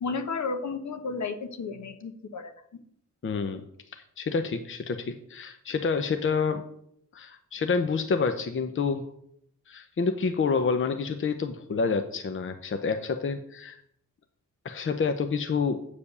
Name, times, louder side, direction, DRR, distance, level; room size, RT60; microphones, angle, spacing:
voice 1, 0.0-2.5, left 4 dB, 65° left, 9 dB, 1.1 m, -32 dB
voice 2, 3.2-6.6 7.1-9.1 9.7-13.8 14.6-15.8, left 5 dB, 40° left, 8 dB, 0.7 m, -28 dB
8.5 x 5.0 x 6.7 m, 0.70 s
wide cardioid pair, 105°, 31 cm